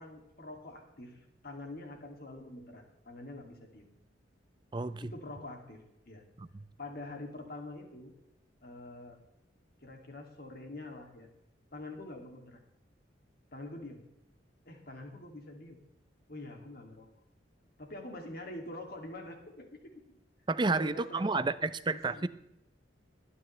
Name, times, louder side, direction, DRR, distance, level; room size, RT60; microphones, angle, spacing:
voice 1, 0.0-3.8 5.0-6.2 6.8-8.1 8.6-9.2 9.8-11.3 11.7-12.6 13.5-14.0 14.7-15.8 16.3-17.1 17.8-19.9 20.6-21.4 21.9-22.3, left 2 dB, 50° left, 3 dB, 2.5 m, -45 dB
voice 2, 4.7-5.1 6.4-6.5 20.5-22.3, right 3 dB, 25° right, 15 dB, 0.5 m, -31 dB
21.5 x 9.8 x 3.3 m, 0.86 s
head